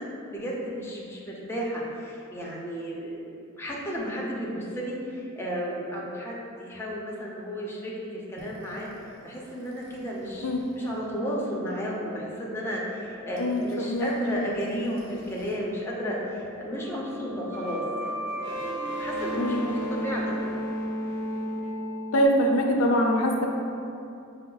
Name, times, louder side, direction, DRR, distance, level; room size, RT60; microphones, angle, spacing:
voice 1, 0.0-8.9 9.2-10.5 10.8-20.4, equal, 10° left, -5 dB, 0.6 m, -33 dB
sound 1, 8.4-15.5 15.8-22.2, equal, 55° right, 0.7 m, -36 dB
voice 2, 13.4-14.1 19.4-19.7 22.1-23.5, equal, 75° left, 1 dB, 0.6 m, -23 dB
5.9 x 2.1 x 3.8 m, 2.6 s
head